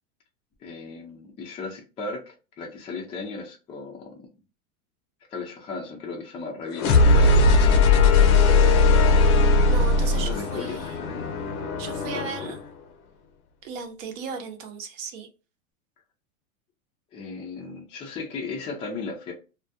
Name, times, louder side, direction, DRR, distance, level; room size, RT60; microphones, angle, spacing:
voice 1, 0.6-4.3 5.3-6.9 7.1-7.5 10.1-11.3 12.1-12.6 17.1-19.3, left 4 dB, 15° left, 0.4 m, -36 dB
sound 1, 6.7-12.6, left 3 dB, 80° left, 0.7 m, -19 dB
voice 2, 9.6-10.9 11.8-12.6 13.6-15.3, right 5 dB, 60° right, 0.7 m, -36 dB
2.3 x 2.1 x 2.7 m
supercardioid pair, 120°, 44 cm